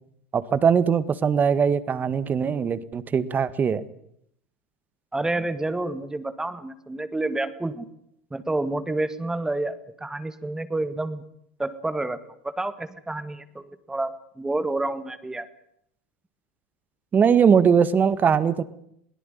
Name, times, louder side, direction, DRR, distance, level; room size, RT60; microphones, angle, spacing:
voice 1, 0.3-3.8 17.1-18.6, right 7 dB, 30° right, 15 dB, 1.7 m, -20 dB
voice 2, 5.1-7.9 8.3-11.2 11.6-12.2 12.4-15.5, right 2 dB, 10° right, 12 dB, 1.8 m, -29 dB
21.5 x 17.5 x 9.3 m, 0.72 s
hypercardioid pair, 95°, 6 cm